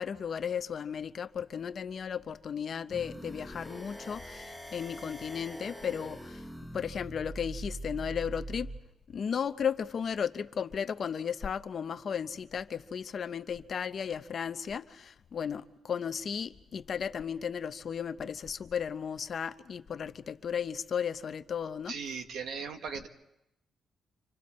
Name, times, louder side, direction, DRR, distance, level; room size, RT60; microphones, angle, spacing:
voice 1, 0.0-6.4 6.7-8.7 9.1-21.9, left 7 dB, 45° left, 0.7 m, -35 dB
sound 1, 2.9-8.8, right 1 dB, ahead, 0.9 m, -43 dB
voice 2, 21.9-23.1, right 6 dB, 75° right, 1.4 m, -38 dB
29.5 x 26.5 x 4.3 m
cardioid pair, 145°, 0 cm